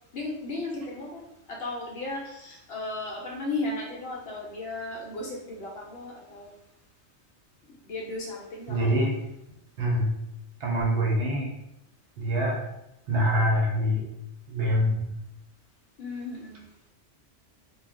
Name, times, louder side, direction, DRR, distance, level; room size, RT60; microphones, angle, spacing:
voice 1, 0.1-1.2 1.5-6.5 7.8-9.0 16.0-16.7, left 2 dB, 65° left, -2 dB, 0.7 m, -35 dB
voice 2, 8.7-9.2 9.8-10.1 10.6-11.5 12.2-12.6 13.1-14.1 14.5-15.1, equal, 65° right, -2 dB, 0.9 m, -25 dB
2.3 x 2.0 x 3.5 m, 0.86 s
omnidirectional pair, 1.3 m